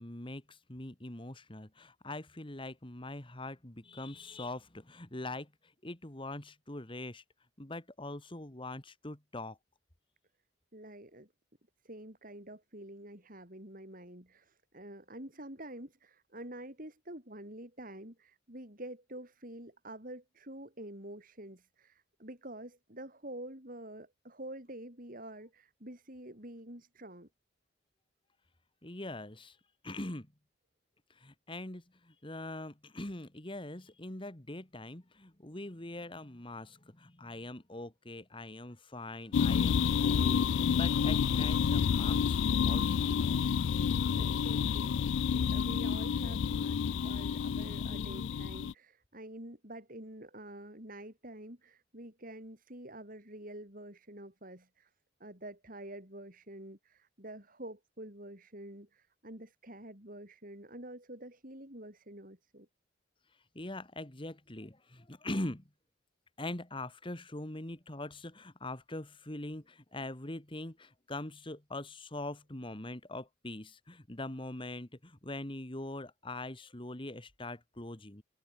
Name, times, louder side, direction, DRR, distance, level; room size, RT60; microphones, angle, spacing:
voice 1, 0.0-7.2 7.6-9.6 28.8-29.6 29.8-30.3 31.1-43.1 47.0-48.3 63.6-65.7 66.4-78.2, left 2 dB, 25° left, 1.9 m, -43 dB
voice 2, 10.7-11.3 11.8-27.3 44.1-54.9 55.2-62.7, right 1 dB, 45° right, 6.7 m, -48 dB
sound 1, 39.3-48.7, left 7 dB, 70° left, 0.3 m, -29 dB
head